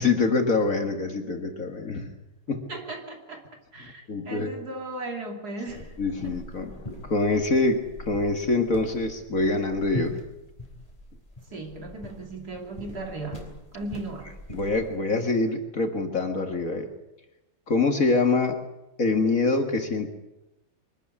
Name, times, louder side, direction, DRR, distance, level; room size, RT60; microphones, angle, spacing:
voice 1, 0.0-2.1 2.5-2.6 4.1-4.5 6.0-10.2 14.5-16.9 17.7-18.6 19.0-20.1, left 3 dB, 45° left, 5 dB, 2.1 m, -25 dB
voice 2, 2.5-3.4 3.7-5.9 6.2-6.4 11.5-14.3, right 2 dB, 50° right, 2 dB, 3.4 m, -37 dB
sound 1, 5.7-15.0, left 1 dB, 15° left, 4.3 m, -41 dB
23.5 x 13.5 x 9.9 m, 0.95 s
omnidirectional pair, 2.2 m